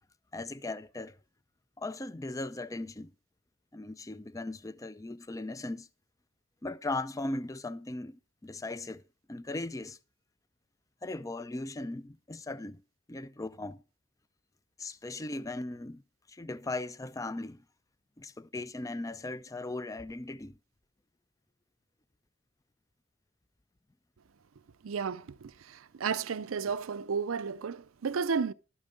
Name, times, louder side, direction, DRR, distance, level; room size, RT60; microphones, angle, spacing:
voice 1, 0.3-1.2 1.8-3.1 3.7-5.9 6.6-9.0 9.3-10.0 11.0-12.8 13.1-13.8 14.8-16.0 16.3-17.6 18.2-20.6, left 2 dB, 15° left, 0.4 m, -38 dB
voice 2, 24.8-28.5, right 5 dB, 80° right, 0.5 m, -33 dB
12.5 x 8.7 x 3.8 m
head